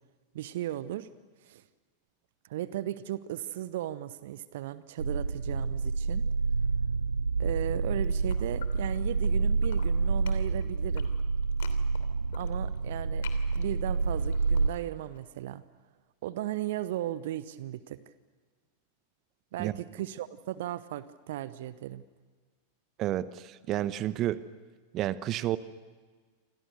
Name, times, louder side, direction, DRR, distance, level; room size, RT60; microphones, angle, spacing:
voice 1, 0.3-1.1 1.4-1.6 2.5-6.3 7.4-11.1 12.3-13.3 13.5-15.6 16.2-18.0 19.5-22.0, right 13 dB, 55° right, 16 dB, 0.9 m, -36 dB
sound 1, 5.0-14.7, right 4 dB, 75° right, 0.7 m, -28 dB
sound 2, 7.6-9.3 9.6-15.2, left 9 dB, 55° left, 3.1 m, -50 dB
voice 2, 23.0-24.4 24.9-25.6, right 13 dB, 35° right, 16 dB, 1.0 m, -30 dB
29.0 x 26.5 x 6.8 m, 1.4 s
figure-of-eight pair, 90°, 0 cm